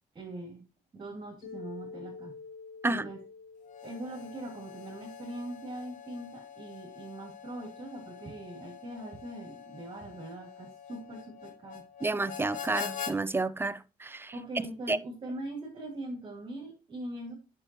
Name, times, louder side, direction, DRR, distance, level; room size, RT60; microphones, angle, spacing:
voice 1, 0.1-0.6 0.9-2.4 2.9-3.2 3.8-11.8 14.3-17.3, right 1 dB, 30° right, 3.2 m, -41 dB
Mallet percussion, 1.4-5.6, left 5 dB, 65° left, 3.3 m, -48 dB
Harmonica, 3.6-13.2, left 8 dB, 50° left, 0.8 m, -44 dB
voice 2, 12.0-14.3 14.9-15.0, right 3 dB, 15° right, 0.5 m, -30 dB
8.8 x 6.7 x 3.0 m
cardioid pair, 110°, 17 cm